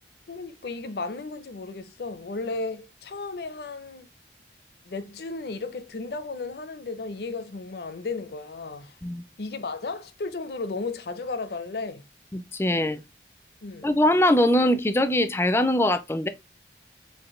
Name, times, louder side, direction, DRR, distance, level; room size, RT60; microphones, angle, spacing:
voice 1, 0.3-4.1 4.8-9.0 9.4-12.0 13.6-13.9, left 3 dB, 65° left, 0.5 m, -34 dB
voice 2, 12.3-13.0 13.8-16.3, left 1 dB, 15° left, 0.3 m, -22 dB
4.3 x 2.6 x 3.0 m
head